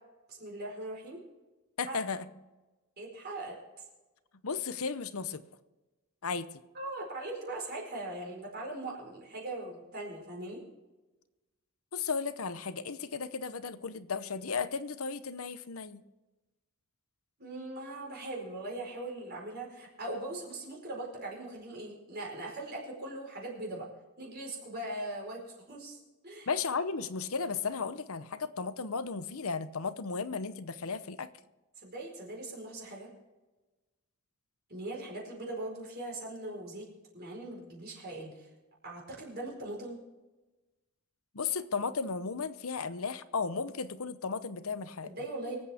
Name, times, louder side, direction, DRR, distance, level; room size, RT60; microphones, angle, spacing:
voice 1, 0.3-1.2 1.8-2.0 3.0-3.6 6.7-10.6 17.4-23.9 24.2-26.0 26.2-26.5 31.8-33.1 34.7-36.9 37.1-38.5 38.8-40.0 45.0-45.6, right 2 dB, 45° right, -1 dB, 4.7 m, -40 dB
voice 2, 1.8-2.3 4.4-5.4 6.2-6.5 11.9-16.0 26.5-31.3 41.3-45.1, left 5 dB, 75° left, 13 dB, 0.8 m, -35 dB
25.0 x 8.6 x 3.6 m, 1.1 s
head